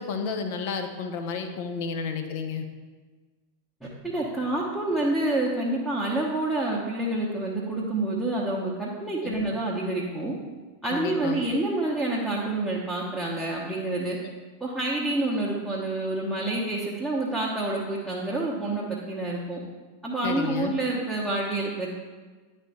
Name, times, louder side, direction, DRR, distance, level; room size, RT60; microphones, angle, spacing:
voice 1, 0.0-2.6 9.2-9.4 10.8-11.4 20.2-20.8, left 5 dB, 50° left, 6 dB, 0.8 m, -31 dB
voice 2, 3.8-10.3 10.8-14.2 14.6-19.6 20.0-21.9, right 2 dB, ahead, -6 dB, 1.1 m, -28 dB
10.0 x 3.4 x 4.2 m, 1.4 s
figure-of-eight pair, 90°, 0 cm